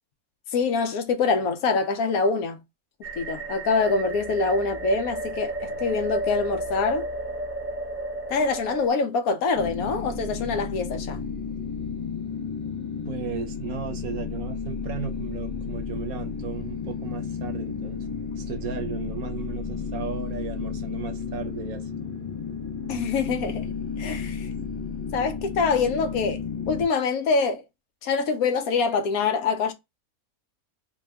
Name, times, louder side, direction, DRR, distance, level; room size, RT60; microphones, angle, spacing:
voice 1, 0.5-2.6 3.2-7.1 8.3-11.2 22.9-23.7 24.0-24.5 25.1-27.6 28.0-29.7, left 4 dB, 75° left, 1.1 m, -25 dB
sound 1, 3.0-8.9, right 2 dB, 10° right, 0.7 m, -32 dB
sound 2, 9.5-26.9, left 5 dB, 15° left, 0.9 m, -32 dB
voice 2, 13.1-18.0 18.4-21.9, right 6 dB, 70° right, 1.2 m, -35 dB
3.5 x 2.3 x 3.4 m
omnidirectional pair, 1.6 m